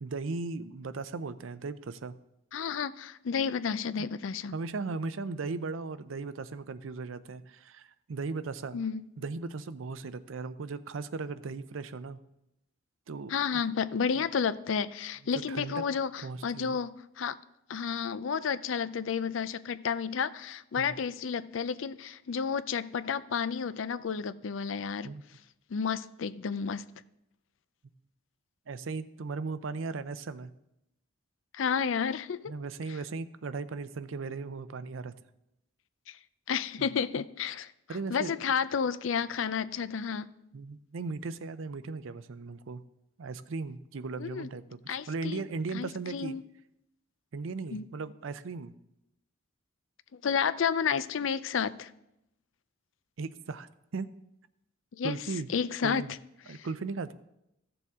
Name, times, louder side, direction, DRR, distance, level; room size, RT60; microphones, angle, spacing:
voice 1, 0.0-2.1 4.0-4.1 4.5-8.8 9.2-12.2 13.1-13.6 15.5-15.7 16.2-16.8 20.8-21.0 25.0-25.2 28.7-30.5 32.5-35.1 36.8-36.9 37.9-38.3 40.5-42.8 43.2-46.4 47.3-48.7 53.2-53.7 53.9-54.1 55.0-55.5 55.8-56.1 56.5-57.1, right 4 dB, 85° right, 0.5 m, -37 dB
voice 2, 2.5-4.5 8.7-9.0 13.3-17.4 17.7-25.1 25.7-26.8 31.5-32.5 36.1-36.2 36.5-37.7 38.1-40.3 44.2-44.5 44.9-45.4 45.7-46.4 47.7-47.8 50.2-51.9 54.9-55.2 55.5-56.0 56.5-56.7, left 6 dB, 75° left, 0.5 m, -31 dB
15.0 x 6.9 x 3.6 m
head